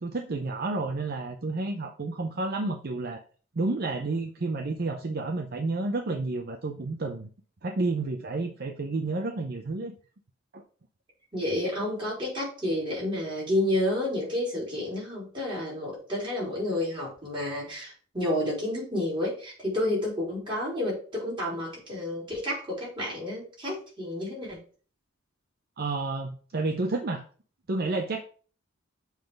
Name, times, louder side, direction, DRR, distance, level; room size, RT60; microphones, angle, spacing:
voice 1, 0.0-3.2 3.5-7.3 7.6-9.9 10.5-10.6 25.8-27.2 27.7-28.2, right 3 dB, 50° right, 5 dB, 0.6 m, -30 dB
voice 2, 11.3-24.6, left 1 dB, 25° right, -5 dB, 3.9 m, -30 dB
7.3 x 3.9 x 5.0 m, 0.41 s
head